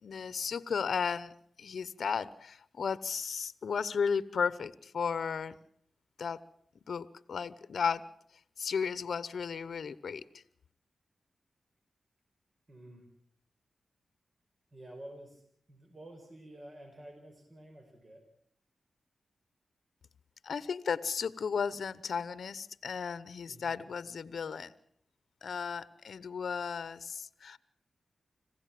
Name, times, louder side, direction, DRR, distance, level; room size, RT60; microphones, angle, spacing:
voice 1, 0.0-5.6 6.2-6.4 6.9-8.0 8.6-10.4 20.4-24.7 25.4-27.6, left 6 dB, 75° left, 16 dB, 0.8 m, -34 dB
voice 2, 12.7-13.1 14.7-15.4 15.7-18.2 23.4-23.7, right 1 dB, 45° right, 4 dB, 5.4 m, -50 dB
26.0 x 16.0 x 7.6 m, 0.66 s
cardioid pair, 45°, 0 cm